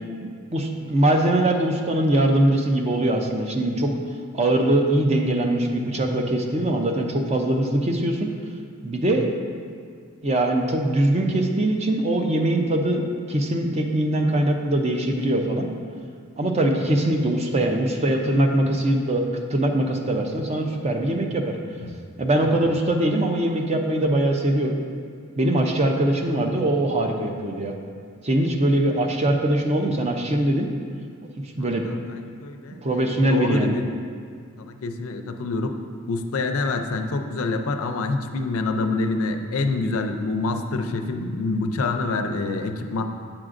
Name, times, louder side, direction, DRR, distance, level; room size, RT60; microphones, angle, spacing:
voice 1, 0.2-3.9 4.3-8.3 8.8-9.3 10.2-15.7 16.4-19.2 19.5-21.6 22.2-24.7 25.4-27.7 28.2-30.7 31.6-31.9 32.8-33.7, right 1 dB, 30° right, 2 dB, 0.5 m, -22 dB
voice 2, 31.6-33.9 34.6-35.7 36.1-43.0, left 3 dB, 70° left, 6 dB, 0.4 m, -26 dB
8.6 x 6.0 x 2.5 m, 2.1 s
head